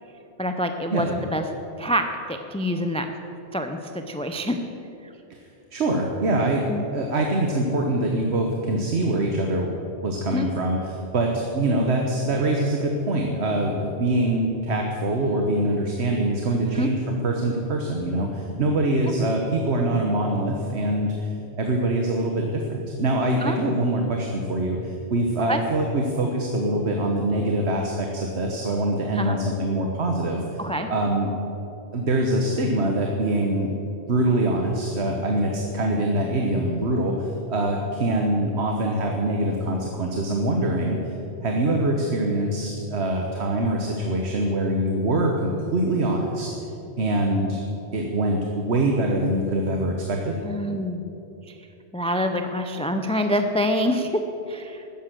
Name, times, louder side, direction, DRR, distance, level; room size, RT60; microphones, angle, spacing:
voice 1, 0.4-1.4 1.8-3.1 3.5-4.6 6.7-6.8 10.3-10.5 16.7-16.9 23.4-23.6 25.5-25.6 29.1-29.4 30.6-30.9 50.4-51.1 51.5-51.6 51.9-54.2 54.5-54.8, equal, 5° left, 6 dB, 0.5 m, -26 dB
voice 2, 5.7-9.7 10.0-30.6 30.9-31.3 31.9-33.7 34.1-41.0 41.4-46.5 47.0-47.6 47.9-50.4, right 1 dB, 75° right, 1 dB, 1.5 m, -24 dB
13.0 x 9.9 x 7.6 m, 2.9 s
omnidirectional pair, 1.1 m